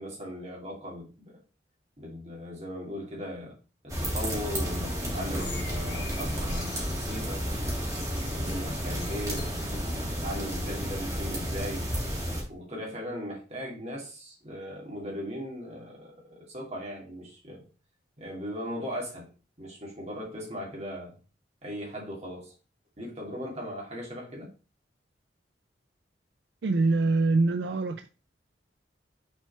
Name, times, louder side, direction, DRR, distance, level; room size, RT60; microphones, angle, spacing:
voice 1, 0.0-1.4 2.0-3.6 3.8-7.6 8.2-11.9 12.5-17.6 18.2-19.3 19.6-21.1 21.6-22.5 23.0-24.5, equal, 35° right, 2.6 m, -38 dB
sound 1, 3.9-12.4, equal, 20° right, 2.8 m, -32 dB
sound 2, 4.8-10.2, left 4 dB, 65° left, 1.9 m, -47 dB
voice 2, 26.6-28.1, right 3 dB, 70° right, 0.4 m, -24 dB
6.4 x 4.5 x 4.4 m
head